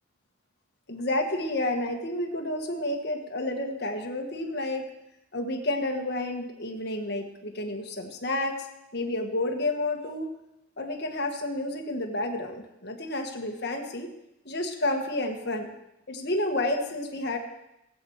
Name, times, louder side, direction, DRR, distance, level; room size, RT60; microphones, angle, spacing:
voice 1, 0.9-4.8 5.3-8.7 8.9-10.3 10.8-14.1 14.4-15.7 16.1-17.4, left 1 dB, 50° left, 3 dB, 1.6 m, -30 dB
19.0 x 8.0 x 4.8 m, 0.89 s
head